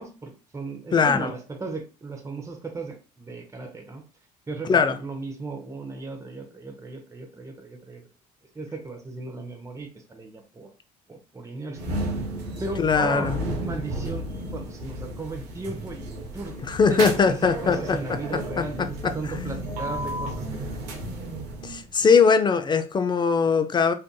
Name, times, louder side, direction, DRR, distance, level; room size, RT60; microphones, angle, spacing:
voice 1, 0.0-4.0 4.5-8.0 8.5-10.7 11.1-11.9 12.6-13.3 13.6-14.2 14.5-20.9, right 3 dB, 15° right, 0.7 m, -36 dB
voice 2, 0.9-1.3 4.6-4.9 12.8-13.4 16.6-18.2 18.6-18.7 19.0-19.1 21.6-23.9, left 5 dB, 20° left, 0.4 m, -21 dB
sound 1, 11.7-21.9, right 1 dB, 85° right, 0.7 m, -33 dB
2.5 x 2.5 x 2.2 m
hypercardioid pair, 65°, 21 cm